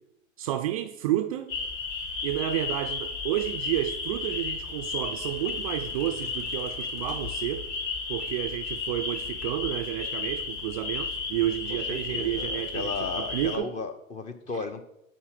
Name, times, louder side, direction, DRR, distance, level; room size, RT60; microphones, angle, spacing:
voice 1, 0.4-1.6 2.2-7.7 8.1-13.7, right 13 dB, 30° right, 7 dB, 0.4 m, -31 dB
sound 1, 1.5-13.6, left 4 dB, 40° left, 1.9 m, -33 dB
sound 2, 4.8-8.3 9.4-10.1 10.6-10.9, left 8 dB, 80° left, 2.3 m, -50 dB
voice 2, 11.7-14.8, left 4 dB, 20° left, 10 dB, 0.6 m, -35 dB
10.0 x 4.2 x 5.9 m, 0.85 s
hypercardioid pair, 115°, 41 cm